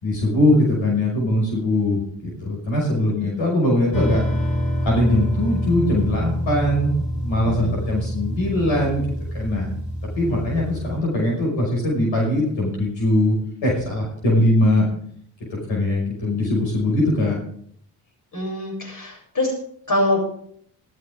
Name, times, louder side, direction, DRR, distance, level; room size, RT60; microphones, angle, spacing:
voice 1, 0.0-4.2 4.8-7.0 7.2-9.0 9.3-9.8 10.2-13.3 13.6-14.9 15.7-17.4, left 1 dB, 70° left, -2 dB, 6.0 m, -21 dB
sound 1, 3.9-11.0, equal, 15° left, 6.8 m, -26 dB
voice 2, 7.4-7.9 18.3-19.5 19.9-20.2, left 1 dB, 40° left, -1 dB, 7.7 m, -24 dB
16.0 x 14.0 x 3.7 m, 0.64 s
supercardioid pair, 50°, 48 cm